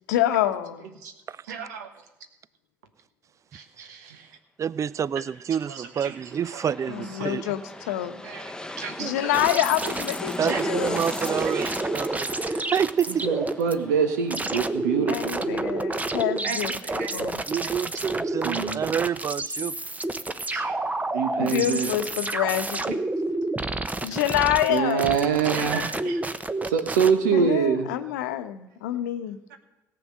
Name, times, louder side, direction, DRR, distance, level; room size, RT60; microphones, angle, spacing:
voice 1, 0.1-0.9 6.9-8.2 9.0-11.2 15.1-17.4 21.4-23.0 24.0-25.7 27.3-29.4, left 12 dB, 75° left, 0.9 m, -27 dB
voice 2, 1.5-1.9 3.5-4.2 5.1-5.2 5.6-6.2 6.5-6.6 6.9-7.3 8.2-9.3 10.4-10.6 11.4-12.3 13.1-15.6 16.4-16.6 16.8-17.2 18.1-18.9 20.5-20.8 21.1-22.0 22.8-23.0 24.2-24.3 24.7-26.2 26.7-27.9 29.5-29.6, right 6 dB, 80° right, 1.3 m, -27 dB
voice 3, 4.6-7.6 9.0-9.1 10.4-13.3 17.5-19.8, right 8 dB, 35° right, 0.4 m, -28 dB
sound 1, 5.8-17.2 17.5-17.6, left 2 dB, 10° left, 0.9 m, -39 dB
sound 2, 9.3-13.7 14.3-27.1, right 2 dB, 15° right, 0.9 m, -29 dB
17.5 x 7.7 x 6.4 m
hypercardioid pair, 55°, 9 cm